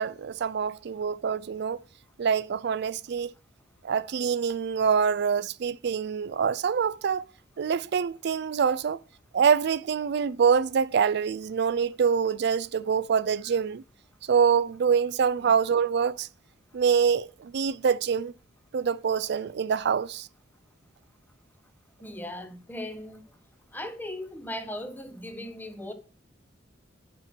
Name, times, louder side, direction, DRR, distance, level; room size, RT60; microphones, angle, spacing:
voice 1, 0.0-1.8 2.2-3.3 3.8-7.3 7.6-9.0 9.3-13.8 14.3-16.3 16.7-18.3 18.7-20.3, right 6 dB, 60° right, 0.4 m, -25 dB
voice 2, 22.0-23.2 23.7-25.9, left 1 dB, 10° left, 1.0 m, -38 dB
9.6 x 4.4 x 5.8 m
head